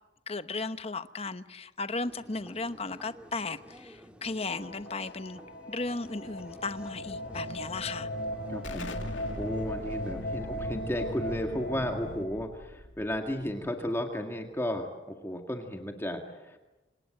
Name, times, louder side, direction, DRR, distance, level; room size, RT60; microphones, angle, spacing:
voice 1, 0.3-5.4 5.7-8.1, left 3 dB, 30° left, 1.0 m, -35 dB
sound 1, 2.0-11.5, equal, 5° right, 1.6 m, -53 dB
sound 2, 4.4-12.2, equal, 55° left, 4.3 m, -38 dB
voice 2, 8.5-16.6, equal, 15° left, 1.9 m, -34 dB
Explosion, 8.6-14.1, left 1 dB, 80° left, 2.4 m, -43 dB
27.5 x 26.5 x 7.7 m
head